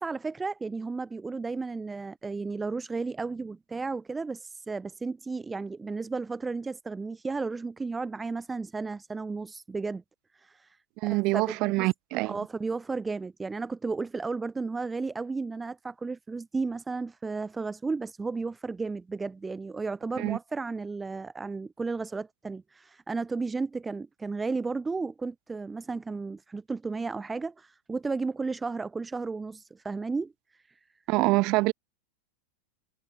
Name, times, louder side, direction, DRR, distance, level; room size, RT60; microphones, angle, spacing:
voice 1, 0.0-10.0 10.3-11.9 12.2-30.8, right 4 dB, 10° right, 5.9 m, -34 dB
voice 2, 11.0-12.4 20.2-20.4 31.1-31.7, right 23 dB, 40° right, 3.9 m, -25 dB
figure-of-eight pair, 90°, 0 cm